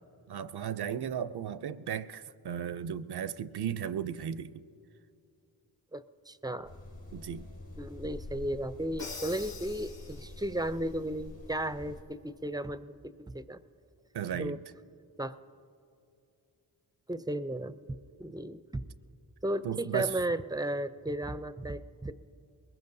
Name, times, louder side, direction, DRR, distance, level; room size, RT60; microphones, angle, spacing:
voice 1, 0.3-4.5 7.1-7.5 14.1-14.6 19.6-20.1, right 9 dB, 65° right, 0.5 m, -35 dB
voice 2, 5.9-6.7 7.8-13.6 14.3-14.6 15.2-15.4 17.1-17.8 18.2-18.8 19.4-22.1, right 1 dB, 10° right, 0.4 m, -35 dB
sound 1, 6.6-12.0, left 2 dB, 80° left, 3.7 m, -47 dB
Crash cymbal, 9.0-10.7, left 3 dB, 55° left, 3.4 m, -44 dB
22.5 x 20.5 x 2.7 m
cardioid pair, 70°, 43 cm